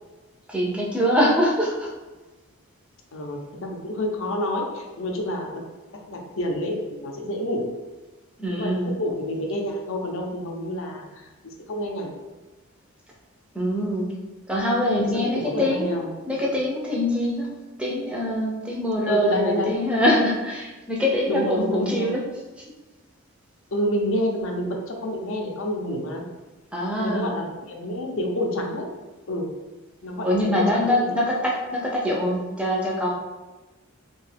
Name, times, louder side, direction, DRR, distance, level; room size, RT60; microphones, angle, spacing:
voice 1, 0.5-1.9 8.4-8.9 13.5-14.1 14.5-16.0 16.3-17.5 17.8-22.2 22.6-22.7 26.7-27.3 30.2-33.1, left 1 dB, 5° right, -3 dB, 0.5 m, -23 dB
voice 2, 3.1-5.6 6.1-7.7 8.5-11.3 11.7-12.1 15.0-16.1 19.0-19.8 21.3-22.1 23.7-26.2 27.0-28.9 29.3-29.5 30.0-31.2, equal, 60° left, 1 dB, 0.5 m, -28 dB
2.7 x 2.3 x 3.3 m, 1.2 s
head